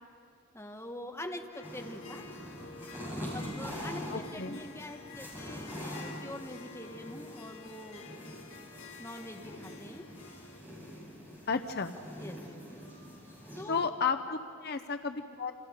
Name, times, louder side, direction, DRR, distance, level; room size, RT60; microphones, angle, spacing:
voice 1, 0.5-2.3 3.3-8.1 9.0-10.1 12.2-12.8 13.6-13.9, left 1 dB, 10° left, 3 dB, 1.3 m, -44 dB
Harp, 1.5-10.6, left 4 dB, 70° left, 1.7 m, -50 dB
sound 1, 1.6-13.6, equal, 10° right, 7.4 m, -44 dB
voice 2, 4.1-4.6 11.5-12.0 13.7-15.5, left 5 dB, 45° left, 8 dB, 0.7 m, -33 dB
29.5 x 26.5 x 5.1 m, 2.3 s
head